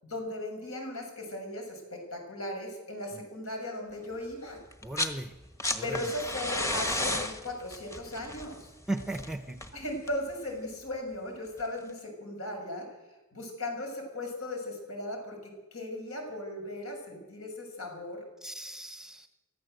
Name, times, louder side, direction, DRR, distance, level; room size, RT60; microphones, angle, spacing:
voice 1, 0.0-4.6 5.8-8.7 9.7-12.9 13.3-15.4 15.7-18.2, left 1 dB, 70° left, 2 dB, 6.9 m, -37 dB
sound 1, 4.7-5.2 5.4-10.3 11.6-11.7, left 1 dB, 15° left, 1.4 m, -33 dB
voice 2, 4.8-5.3 5.7-6.0 8.9-9.6 18.4-19.3, right 2 dB, 5° right, 8 dB, 0.8 m, -36 dB
24.0 x 14.5 x 8.0 m, 1.1 s
head